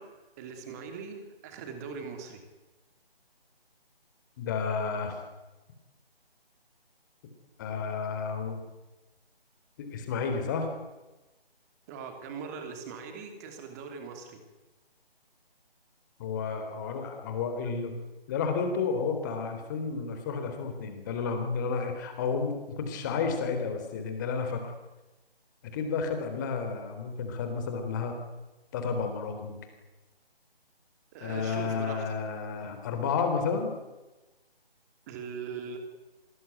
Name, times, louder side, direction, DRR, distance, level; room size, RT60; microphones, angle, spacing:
voice 1, 0.0-2.4 11.9-14.4 31.1-32.1 35.1-35.8, right 5 dB, 15° right, 6 dB, 3.0 m, -41 dB
voice 2, 4.4-5.2 7.6-8.6 9.8-10.7 16.2-18.0 18.3-24.7 25.7-28.2 28.7-29.6 31.2-33.7, left 5 dB, 20° left, 6 dB, 3.7 m, -31 dB
24.5 x 22.0 x 9.4 m, 1.1 s
figure-of-eight pair, 160°, 31 cm